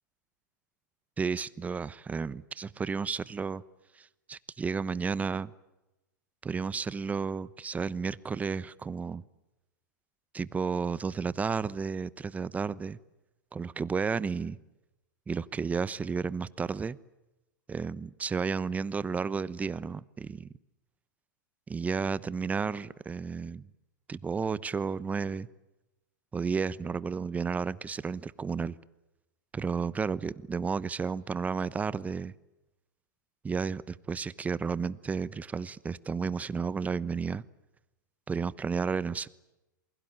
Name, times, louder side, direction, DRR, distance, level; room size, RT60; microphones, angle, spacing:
voice 1, 1.2-3.6 4.0-5.5 6.4-9.2 10.3-13.0 13.5-14.6 15.3-17.0 17.7-20.5 21.7-23.7 24.1-25.5 26.3-28.8 29.5-32.3 33.4-37.4 38.3-39.3, right 5 dB, 15° right, 19 dB, 1.0 m, -32 dB
27.5 x 22.0 x 8.9 m, 0.98 s
hypercardioid pair, 120°, 10 cm